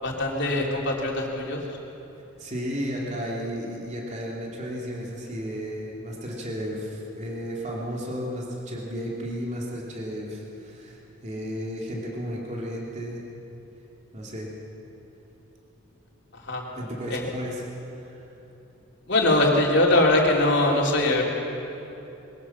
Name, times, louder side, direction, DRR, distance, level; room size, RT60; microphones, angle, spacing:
voice 1, 0.0-1.6 16.4-16.6 17.1-17.2 19.1-21.2, left 2 dB, 55° left, -1 dB, 3.4 m, -22 dB
voice 2, 2.4-13.2 14.1-14.5 16.7-17.6 18.0-18.3, equal, 35° right, -3 dB, 3.0 m, -33 dB
22.5 x 18.5 x 7.3 m, 3.0 s
head